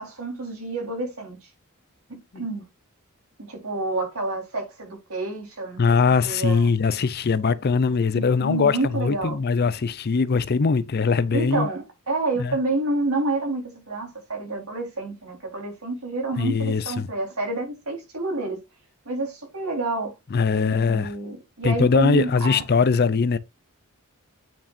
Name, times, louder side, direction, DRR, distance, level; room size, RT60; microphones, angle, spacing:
voice 1, 0.0-1.4 2.1-2.7 3.4-6.0 6.2-6.7 7.9-9.4 11.3-18.6 19.1-20.1 20.5-22.6, right 2 dB, 80° right, 4.0 m, -29 dB
voice 2, 5.8-11.7 12.4-12.6 16.4-17.1 20.3-21.1 21.6-23.4, left 5 dB, 45° left, 0.5 m, -21 dB
8.8 x 5.8 x 2.6 m
head